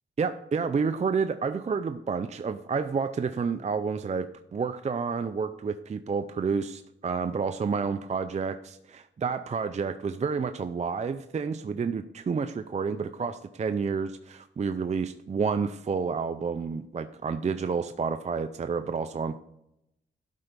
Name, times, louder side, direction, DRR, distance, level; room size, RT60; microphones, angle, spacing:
voice 1, 0.2-19.4, right 5 dB, 35° right, 9 dB, 0.4 m, -30 dB
12.0 x 4.5 x 5.2 m, 0.81 s
wide cardioid pair, 95°, 21 cm